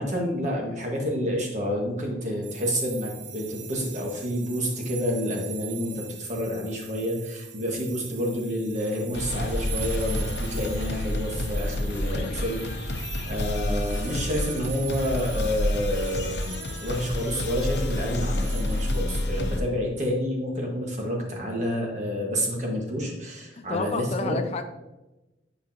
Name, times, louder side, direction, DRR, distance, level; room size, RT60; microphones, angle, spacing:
voice 1, 0.0-24.3, equal, 40° right, -1 dB, 1.6 m, -29 dB
sound 1, 2.4-19.0, right 8 dB, 90° right, 0.9 m, -43 dB
sound 2, 9.1-19.6, left 1 dB, 70° left, 0.7 m, -29 dB
voice 2, 23.5-24.7, left 3 dB, 35° left, 8 dB, 0.4 m, -30 dB
9.9 x 5.0 x 2.9 m, 1.0 s
head